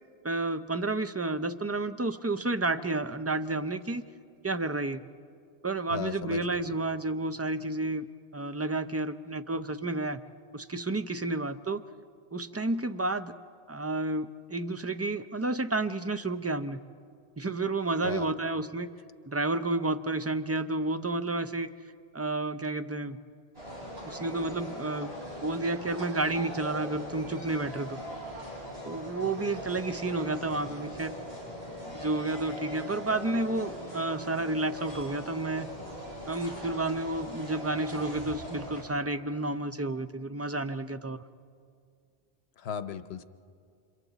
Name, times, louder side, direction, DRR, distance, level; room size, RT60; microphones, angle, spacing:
voice 1, 0.2-4.0 4.4-5.0 5.6-8.0 8.3-10.2 10.5-11.8 12.3-13.3 13.7-16.8 17.4-18.9 19.3-21.7 22.1-23.2 24.1-28.0 28.8-31.2 31.8-35.7 36.3-41.2, right 2 dB, 25° right, 10 dB, 0.3 m, -31 dB
voice 2, 5.9-6.7 18.0-18.3 42.6-43.2, left 7 dB, 85° left, 12 dB, 1.0 m, -36 dB
sound 1, 23.5-38.8, equal, 80° right, 7.7 m, -40 dB
30.0 x 27.0 x 4.0 m, 2.3 s
omnidirectional pair, 1.0 m